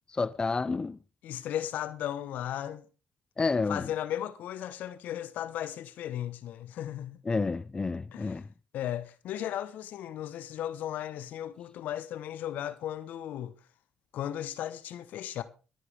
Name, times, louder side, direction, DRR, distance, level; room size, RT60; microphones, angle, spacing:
voice 1, 0.1-1.0 3.4-3.9 7.3-8.5, left 4 dB, 30° left, 0.6 m, -30 dB
voice 2, 1.2-2.9 3.7-7.2 8.1-8.4 8.7-13.5 14.1-15.4, left 11 dB, 70° left, 1.0 m, -36 dB
25.0 x 9.1 x 3.5 m
hypercardioid pair, 50°, 3 cm